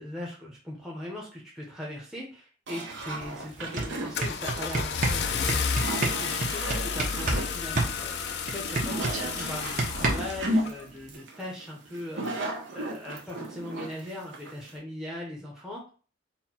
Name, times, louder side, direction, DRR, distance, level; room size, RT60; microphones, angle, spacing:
voice 1, 0.0-15.9, left 1 dB, ahead, -4 dB, 0.8 m, -40 dB
sound 1, 2.7-14.8, right 1 dB, 75° right, 0.9 m, -35 dB
Car / Engine starting, 3.0-3.3 3.8-10.7, left 6 dB, 60° left, 0.4 m, -32 dB
sound 2, 3.2-3.3 3.6-7.5 7.8-10.5, right 2 dB, 40° right, 0.9 m, -29 dB
4.3 x 2.2 x 4.2 m, 0.38 s
head